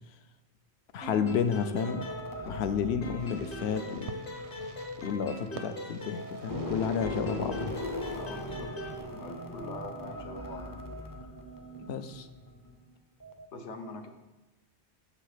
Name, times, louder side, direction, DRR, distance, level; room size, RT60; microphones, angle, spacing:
voice 1, 0.9-2.1 2.4-4.1 5.0-7.8 11.9-12.3, left 7 dB, 70° left, 10 dB, 0.9 m, -31 dB
sound 1, 1.0-2.7 3.0-6.6 7.0-9.0, left 1 dB, 55° left, 1.5 m, -41 dB
sound 2, 1.7-5.7 6.1-12.8 13.2-13.5, left 1 dB, 25° left, 0.6 m, -40 dB
Fireworks, 3.2-8.8, right 7 dB, 85° right, 0.9 m, -49 dB
voice 2, 8.1-10.8 13.5-14.1, left 3 dB, 90° left, 5 dB, 1.3 m, -43 dB
6.9 x 5.8 x 5.7 m, 1.1 s
omnidirectional pair, 1.1 m